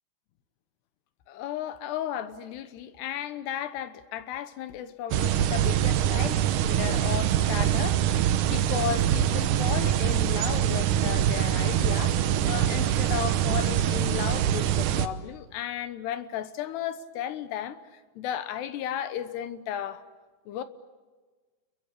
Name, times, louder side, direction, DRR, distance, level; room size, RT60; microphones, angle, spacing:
voice 1, 1.3-20.0 20.5-20.6, left 10 dB, 80° left, 3.1 m, -34 dB
sound 1, 5.1-15.1, right 11 dB, 75° right, 1.9 m, -24 dB
29.5 x 22.5 x 8.4 m
omnidirectional pair, 4.9 m